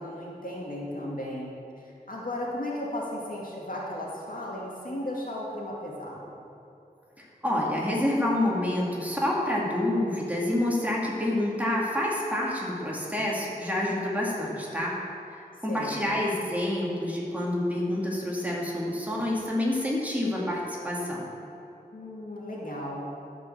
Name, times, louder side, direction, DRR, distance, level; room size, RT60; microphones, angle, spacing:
voice 1, 0.0-1.5 1.8-6.2 15.7-16.0 21.9-23.0, left 1 dB, 60° left, -4 dB, 2.2 m, -35 dB
voice 2, 7.4-15.0 15.6-21.2, left 1 dB, 10° right, -5 dB, 2.4 m, -28 dB
13.5 x 5.4 x 6.6 m, 2.8 s
wide cardioid pair, 55°, 16 cm